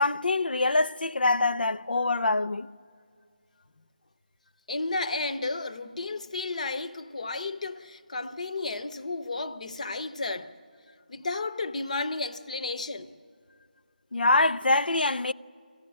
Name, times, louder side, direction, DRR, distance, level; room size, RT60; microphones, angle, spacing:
voice 1, 0.0-2.7 14.1-15.3, left 2 dB, 75° left, 0.5 m, -24 dB
voice 2, 4.7-10.5 11.1-13.1, left 3 dB, 50° left, 0.9 m, -33 dB
23.0 x 14.5 x 9.9 m
figure-of-eight pair, 160°, 5 cm